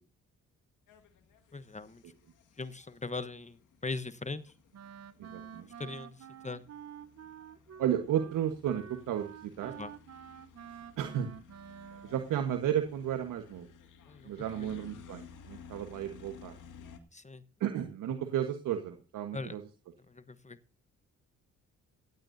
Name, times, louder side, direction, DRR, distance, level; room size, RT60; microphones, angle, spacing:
sound 1, 0.9-17.0, left 6 dB, 75° left, 2.2 m, -56 dB
voice 1, 1.5-2.0 2.6-4.5 5.8-6.2 6.4-6.6 9.8-9.9 14.1-14.3 17.1-17.4 19.3-19.6 20.1-20.6, left 3 dB, 20° left, 13 dB, 1.1 m, -40 dB
Wind instrument woodwind instrument, 4.7-12.3, right 8 dB, 55° right, 1.0 m, -49 dB
voice 2, 5.2-5.7 7.8-9.7 11.0-11.3 12.0-13.7 14.2-16.5 17.6-19.6, right 10 dB, 80° right, 6 dB, 1.5 m, -33 dB
16.0 x 15.0 x 2.7 m, 0.37 s
supercardioid pair, 60°, 31 cm